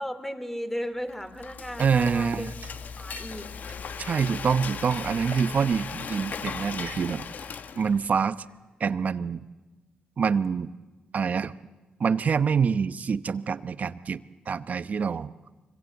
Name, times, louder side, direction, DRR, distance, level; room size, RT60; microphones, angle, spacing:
voice 1, 0.0-2.5 3.0-3.5, equal, 10° left, 10 dB, 2.6 m, -35 dB
Frying (food), 1.1-8.2, left 6 dB, 60° left, 0.9 m, -37 dB
voice 2, 1.8-2.5 4.0-7.2 7.8-8.4 8.8-9.4 10.2-10.7 11.1-11.5 12.0-15.3, right 6 dB, 50° right, 13 dB, 0.9 m, -26 dB
sound 1, 2.1-4.7 5.7-9.1, right 7 dB, 70° right, 3.1 m, -52 dB
24.5 x 22.5 x 8.1 m, 1.2 s
cardioid pair, 65°, 3 cm